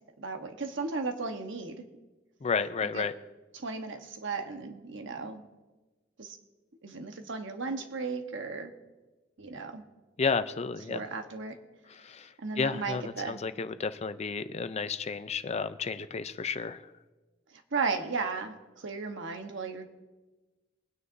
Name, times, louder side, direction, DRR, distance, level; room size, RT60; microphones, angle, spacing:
voice 1, 0.2-1.8 2.9-3.1 3.5-5.4 6.2-6.4 6.8-8.7 9.4-9.8 10.9-11.6 12.4-13.4 17.7-19.9, right 4 dB, 65° right, 5 dB, 1.1 m, -35 dB
voice 2, 2.4-3.1 10.2-11.0 12.0-12.3 12.6-16.8, left 5 dB, 35° left, 12 dB, 0.5 m, -32 dB
23.0 x 9.7 x 2.6 m, 1.2 s
head